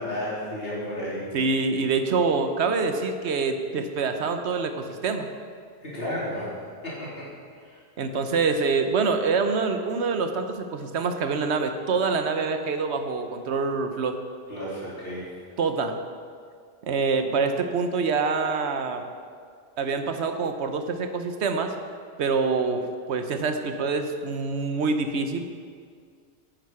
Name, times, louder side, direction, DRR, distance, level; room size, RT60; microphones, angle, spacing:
voice 1, 0.0-1.4 5.8-7.3 7.6-7.8 14.5-15.4, left 1 dB, 60° left, -7 dB, 3.5 m, -33 dB
voice 2, 1.3-5.3 8.0-14.2 15.6-16.0 16.8-19.0 19.8-21.7 22.2-25.4, right 4 dB, 75° right, 7 dB, 1.1 m, -26 dB
9.5 x 9.0 x 5.8 m, 2.1 s
omnidirectional pair, 1.1 m